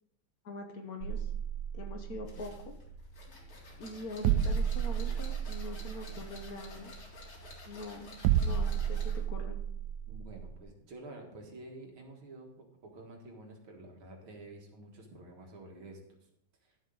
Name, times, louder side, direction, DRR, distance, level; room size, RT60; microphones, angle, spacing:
voice 1, 0.4-1.3 1.7-2.7 3.8-6.9 7.6-9.6, left 2 dB, 55° left, 4 dB, 1.3 m, -43 dB
sound 1, 1.0-10.6, right 9 dB, 70° right, 1.0 m, -33 dB
sound 2, 2.3-9.3, left 2 dB, 90° left, 3.1 m, -52 dB
voice 2, 10.1-16.0 16.6-16.8, right 2 dB, 85° right, 1 dB, 2.5 m, -49 dB
11.5 x 7.4 x 3.8 m, 0.74 s
omnidirectional pair, 2.2 m